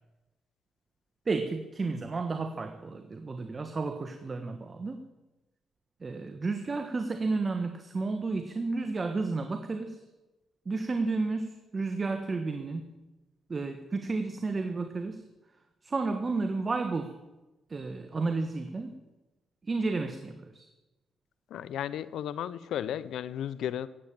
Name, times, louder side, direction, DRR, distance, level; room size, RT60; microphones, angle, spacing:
voice 1, 1.2-5.0 6.0-10.0 10.6-13.0 13.5-15.2 15.8-17.1 17.7-19.0 19.6-20.7, right 3 dB, 35° right, 7 dB, 1.3 m, -32 dB
voice 2, 21.5-23.9, left 10 dB, 80° left, 17 dB, 0.7 m, -34 dB
16.0 x 8.6 x 9.0 m, 1.1 s
cardioid pair, 75°, 0 cm